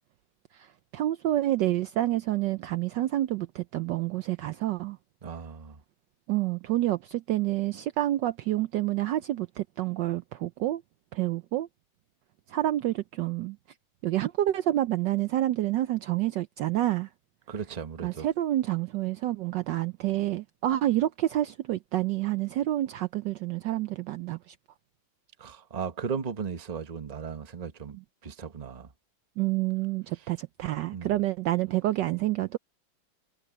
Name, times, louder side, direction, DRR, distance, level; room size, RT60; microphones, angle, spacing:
voice 1, 0.9-5.0 6.3-10.8 11.1-11.7 12.5-13.6 14.0-17.1 18.0-24.5 29.4-32.6, right 14 dB, 70° right, 1.1 m, -28 dB
voice 2, 5.2-5.8 17.5-18.3 25.4-28.0 28.2-28.9 30.9-31.1, right 6 dB, 25° right, 0.9 m, -36 dB
omnidirectional pair, 2.3 m